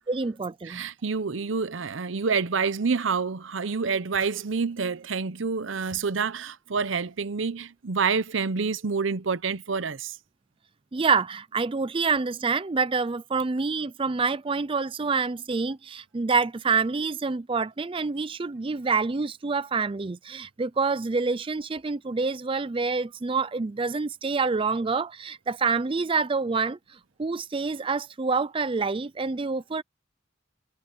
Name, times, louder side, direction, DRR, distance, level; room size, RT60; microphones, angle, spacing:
voice 1, 0.1-0.8 10.9-26.8 27.2-29.8, right 4 dB, 25° right, 0.4 m, -27 dB
voice 2, 0.6-10.2, right 5 dB, 75° right, 0.8 m, -28 dB
head